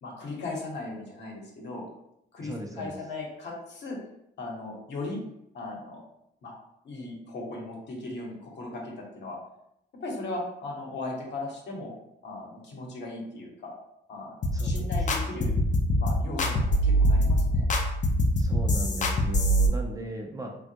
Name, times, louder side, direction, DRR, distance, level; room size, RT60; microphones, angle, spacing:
voice 1, 0.0-1.9 2.3-4.0 4.4-5.2 5.5-6.0 6.4-6.5 6.8-9.4 10.0-11.9 12.2-13.8 14.1-14.3 14.6-15.5 16.0-17.7, left 2 dB, 70° left, -1 dB, 1.0 m, -37 dB
voice 2, 2.4-2.9 14.5-14.9 18.4-20.5, right 1 dB, 20° right, 1 dB, 0.5 m, -37 dB
sound 1, 14.4-19.7, equal, 40° left, 0.5 m, -24 dB
3.4 x 2.2 x 2.8 m, 0.80 s
cardioid pair, 85°, 19 cm